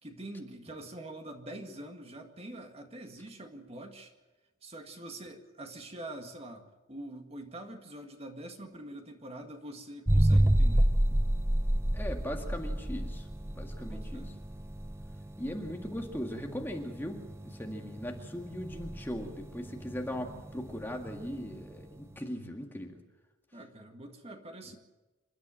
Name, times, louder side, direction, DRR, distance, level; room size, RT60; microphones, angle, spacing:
voice 1, 0.0-4.1 4.6-10.9 13.8-14.3 23.5-24.8, right 1 dB, 30° right, 4 dB, 1.9 m, -45 dB
sound 1, 10.1-21.7, right 1 dB, 15° right, 0.6 m, -29 dB
voice 2, 11.9-13.3 13.6-14.3 15.4-23.0, equal, 10° left, 2 dB, 1.9 m, -39 dB
27.5 x 12.0 x 9.0 m, 1.1 s
head